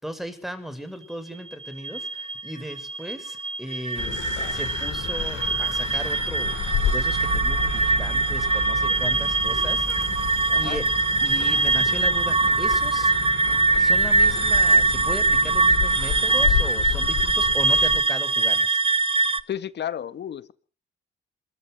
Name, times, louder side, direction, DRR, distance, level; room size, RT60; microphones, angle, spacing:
voice 1, 0.0-4.2 4.5-10.9 11.2-13.1 13.8-18.8, equal, ahead, 9 dB, 6.3 m, -37 dB
sound 1, 1.5-19.4, right 3 dB, 30° right, 1.3 m, -22 dB
sound 2, 4.0-18.0, left 9 dB, 75° left, 5.8 m, -31 dB
sound 3, 6.0-15.2, right 9 dB, 65° right, 2.1 m, -37 dB
voice 2, 19.5-20.5, left 10 dB, 60° left, 13 dB, 1.8 m, -32 dB
27.0 x 14.0 x 8.0 m, 0.42 s
cardioid pair, 90°, 20 cm